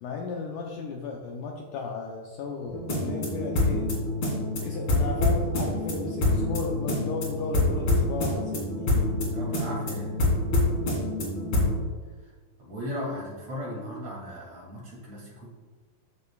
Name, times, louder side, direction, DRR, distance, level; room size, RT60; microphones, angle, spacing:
voice 1, 0.0-3.9 4.6-9.1, left 4 dB, 75° left, 0 dB, 2.0 m, -35 dB
sound 1, 2.7-11.8, left 2 dB, 40° left, 3.0 m, -26 dB
voice 2, 9.3-10.1 12.2-12.3 12.6-15.5, equal, 45° right, -4 dB, 3.2 m, -37 dB
13.5 x 6.9 x 2.3 m, 1.4 s
omnidirectional pair, 4.3 m